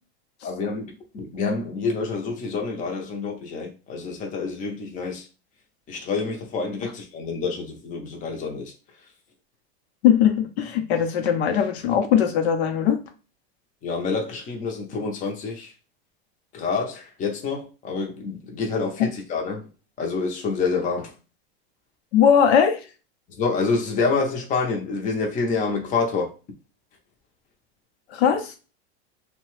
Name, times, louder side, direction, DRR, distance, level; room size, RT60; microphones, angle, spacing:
voice 1, 0.4-0.9 1.1-5.2 5.9-8.7 13.8-15.7 16.5-19.7 20.0-21.1 23.4-26.3, left 4 dB, 25° left, 0.6 m, -27 dB
voice 2, 10.0-13.0 22.1-22.9 28.1-28.5, left 8 dB, 75° left, 0.7 m, -20 dB
2.8 x 2.2 x 3.0 m
supercardioid pair, 135°, 33 cm